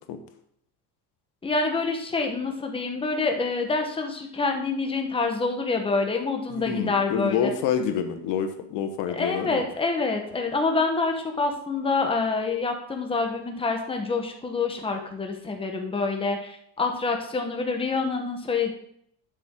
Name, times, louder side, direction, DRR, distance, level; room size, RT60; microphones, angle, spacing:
voice 1, 1.4-7.5 9.1-18.7, left 3 dB, 10° left, 3 dB, 1.1 m, -27 dB
voice 2, 6.5-9.6, left 8 dB, 75° left, 7 dB, 1.5 m, -27 dB
11.5 x 7.3 x 3.7 m, 0.70 s
cardioid pair, 160°, 44 cm